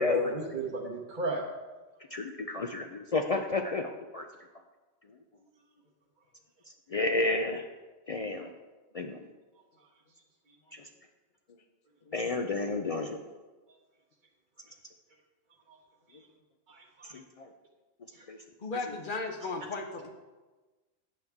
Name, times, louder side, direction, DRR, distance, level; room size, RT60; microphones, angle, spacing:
voice 1, 0.0-1.4 15.7-15.8 16.7-17.2 18.2-18.3, equal, 45° right, -2 dB, 1.0 m, -33 dB
voice 2, 2.1-4.3 6.9-7.6 8.1-8.5 8.9-9.2 10.7-10.9 12.1-13.2 17.1-17.5 18.3-18.4 18.8-19.0, left 3 dB, 65° left, 4 dB, 0.3 m, -31 dB
voice 3, 18.6-20.1, left 3 dB, 50° left, 4 dB, 1.0 m, -35 dB
9.3 x 6.9 x 3.5 m, 1.2 s
omnidirectional pair, 1.2 m